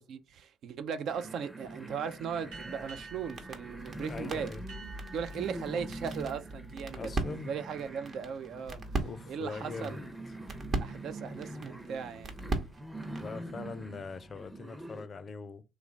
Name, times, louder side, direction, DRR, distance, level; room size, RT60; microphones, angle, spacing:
voice 1, 0.1-4.5 5.1-8.8 9.3-10.0 10.8-12.3, right 7 dB, 60° right, 0.4 m, -38 dB
sound 1, 1.1-15.1, right 1 dB, 10° right, 0.6 m, -45 dB
sound 2, 2.5-13.4, right 3 dB, 45° right, 0.8 m, -40 dB
sound 3, 2.5-7.6, right 4 dB, 80° right, 1.2 m, -52 dB
voice 2, 4.1-4.6 7.0-7.5 9.0-10.0 10.3-10.4 13.2-15.6, left 4 dB, 40° left, 0.4 m, -42 dB
3.1 x 2.4 x 3.2 m
hypercardioid pair, 55°, 0 cm